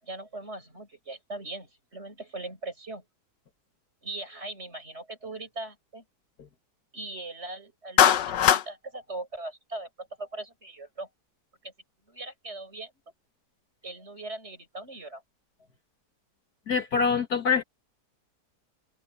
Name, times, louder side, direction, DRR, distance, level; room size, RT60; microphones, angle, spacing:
voice 1, 0.0-3.0 4.0-6.0 6.9-11.1 11.6-11.7 12.1-12.9 13.8-15.2, right 2 dB, 40° right, 7.3 m, -40 dB
Clapping, 8.0-8.7, left 10 dB, 85° left, 1.6 m, -19 dB
voice 2, 16.7-17.6, left 5 dB, 65° left, 2.5 m, -24 dB
omnidirectional pair, 1.8 m